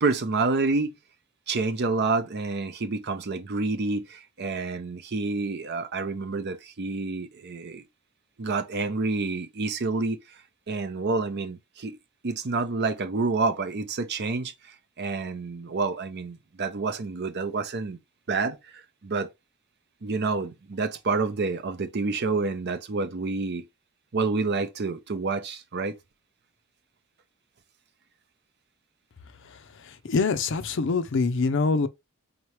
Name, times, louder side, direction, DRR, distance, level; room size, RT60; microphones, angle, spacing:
voice 1, 0.0-0.9 1.5-7.8 8.4-10.2 10.7-12.0 12.2-14.5 15.0-18.0 18.3-19.3 20.0-23.7 24.1-26.0, right 3 dB, 50° right, 0.6 m, -28 dB
voice 2, 29.9-31.9, left 4 dB, 55° left, 0.5 m, -24 dB
4.2 x 3.0 x 3.1 m
head